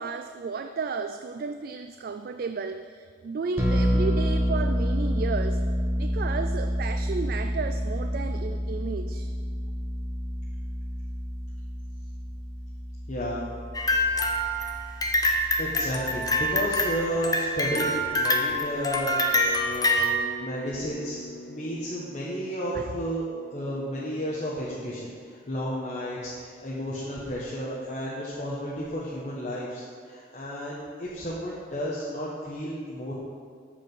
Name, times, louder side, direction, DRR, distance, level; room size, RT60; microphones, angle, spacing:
voice 1, 0.0-5.6 6.0-9.3 22.7-22.9, right 4 dB, 50° right, 8 dB, 0.3 m, -33 dB
sound 1, 3.6-17.0, equal, 15° right, 1.3 m, -29 dB
voice 2, 13.1-13.5 15.6-20.1 20.4-21.2 21.5-23.3 23.5-33.1, equal, 40° left, -6 dB, 1.2 m, -32 dB
sound 2, 13.7-20.2, left 1 dB, 20° left, 0.7 m, -26 dB
sound 3, 17.7-28.8, right 2 dB, 60° left, 0.9 m, -45 dB
13.5 x 5.0 x 5.5 m, 2.1 s
head